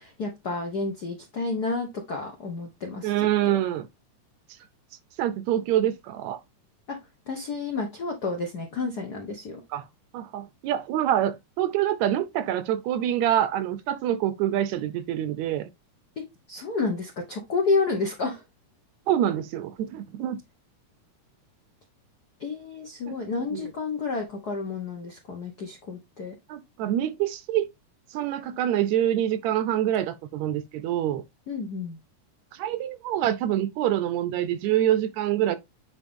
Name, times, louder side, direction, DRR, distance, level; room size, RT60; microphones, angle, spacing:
voice 1, 0.0-3.6 6.9-7.0 7.3-9.6 16.5-18.4 22.4-26.3 31.5-32.0, left 3 dB, 65° left, 0.9 m, -30 dB
voice 2, 3.0-3.9 5.2-6.4 9.7-9.9 10.1-15.7 19.1-20.4 23.1-23.2 23.5-23.6 26.5-27.7 28.1-31.2 32.6-35.6, right 11 dB, 80° right, 1.8 m, -26 dB
9.1 x 3.1 x 3.6 m
omnidirectional pair, 3.4 m